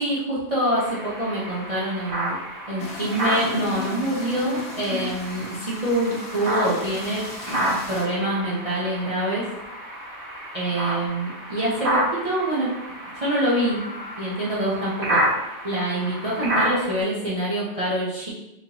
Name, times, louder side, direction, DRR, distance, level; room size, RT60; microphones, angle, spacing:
voice 1, 0.0-2.3 2.7-9.4 10.5-12.7 13.2-13.8 14.2-15.2 15.6-18.3, right 1 dB, 30° right, -8 dB, 1.0 m, -25 dB
sound 1, 0.8-17.0, equal, 50° right, 1.2 m, -30 dB
sound 2, 2.8-8.0, left 3 dB, 65° left, 1.1 m, -36 dB
4.8 x 3.8 x 2.8 m, 0.91 s
omnidirectional pair, 1.2 m